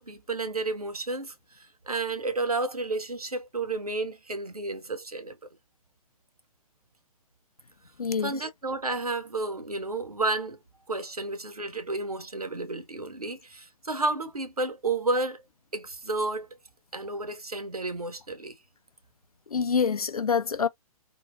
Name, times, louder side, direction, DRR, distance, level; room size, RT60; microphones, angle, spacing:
voice 1, 0.0-5.4 8.2-10.6 10.9-15.4 15.7-16.5 16.9-18.6, right 3 dB, 85° right, 0.8 m, -31 dB
voice 2, 8.0-8.5 19.5-20.7, left 6 dB, 80° left, 0.5 m, -26 dB
3.7 x 2.1 x 2.5 m
figure-of-eight pair, 120°, 19 cm